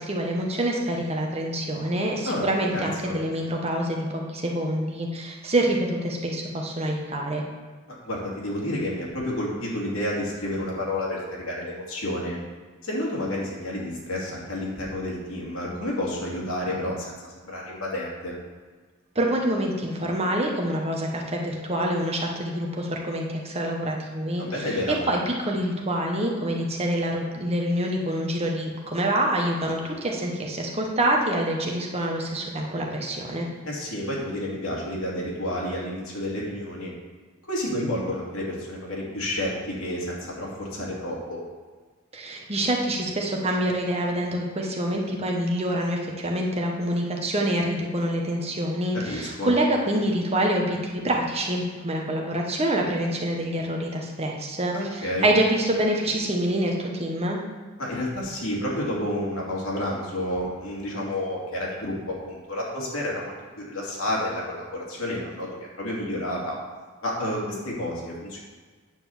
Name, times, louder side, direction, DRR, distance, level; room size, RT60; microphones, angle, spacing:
voice 1, 0.0-7.4 19.1-24.7 25.1-33.5 42.1-57.4, right 1 dB, 30° right, 0 dB, 1.2 m, -26 dB
voice 2, 2.3-3.2 8.0-12.4 12.8-18.3 24.4-25.0 33.6-36.9 37.5-41.4 48.9-49.5 54.7-55.3 57.8-61.9 62.2-65.5 65.8-66.6 67.0-68.4, left 1 dB, 75° left, -4 dB, 2.6 m, -30 dB
9.2 x 4.2 x 7.2 m, 1.4 s
head